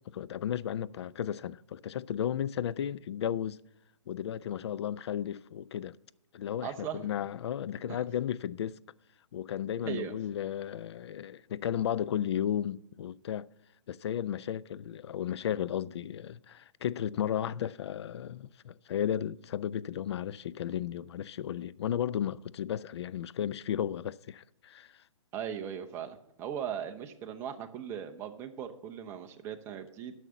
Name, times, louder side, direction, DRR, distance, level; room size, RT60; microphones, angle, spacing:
voice 1, 0.1-3.6 4.1-6.0 6.3-8.8 9.3-13.5 13.9-24.9, left 10 dB, 55° left, 0.4 m, -34 dB
voice 2, 6.6-7.1 9.9-10.1 25.3-30.1, right 8 dB, 15° right, 0.7 m, -38 dB
11.0 x 6.3 x 6.8 m
hypercardioid pair, 150°, 16 cm